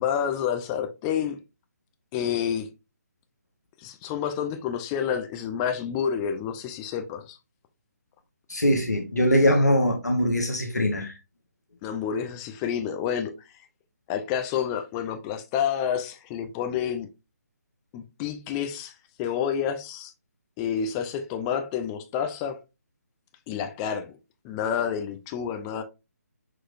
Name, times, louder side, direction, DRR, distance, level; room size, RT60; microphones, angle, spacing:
voice 1, 0.0-1.4 2.1-2.7 3.8-7.4 11.8-13.3 14.1-17.1 17.9-20.1 20.6-22.6 23.5-24.1 24.4-25.8, left 8 dB, 20° left, 0.6 m, -29 dB
voice 2, 8.5-11.2, equal, 85° left, 1.2 m, -22 dB
6.4 x 3.1 x 2.5 m
figure-of-eight pair, 145°, 9 cm